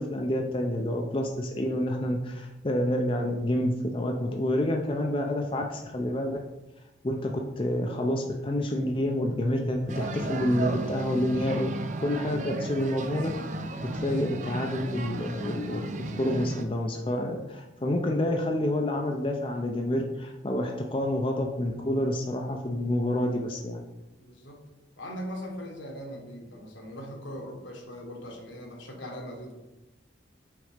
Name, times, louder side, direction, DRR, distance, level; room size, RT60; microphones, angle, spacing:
voice 1, 0.0-6.4 7.0-7.3 7.6-11.7 12.0-13.3 13.9-23.8, left 1 dB, 25° left, 2 dB, 0.5 m, -28 dB
sound 1, 9.9-16.6, right 2 dB, 40° right, 0.5 m, -34 dB
voice 2, 24.2-24.6 25.0-29.5, equal, 80° left, 1 dB, 1.5 m, -40 dB
6.4 x 4.1 x 5.0 m, 1.0 s
head